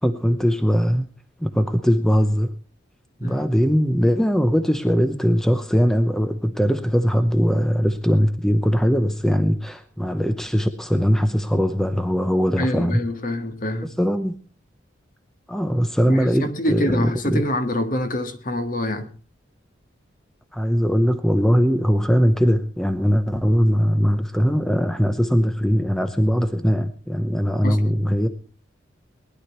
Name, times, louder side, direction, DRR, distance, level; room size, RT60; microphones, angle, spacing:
voice 1, 0.0-1.1 1.4-2.6 3.2-13.0 14.0-14.4 15.5-17.4 20.5-28.3, equal, 5° left, 0.8 m, -20 dB
voice 2, 12.6-13.9 16.1-19.1 27.6-28.1, left 1 dB, 45° left, 1.8 m, -26 dB
19.5 x 11.0 x 4.4 m
head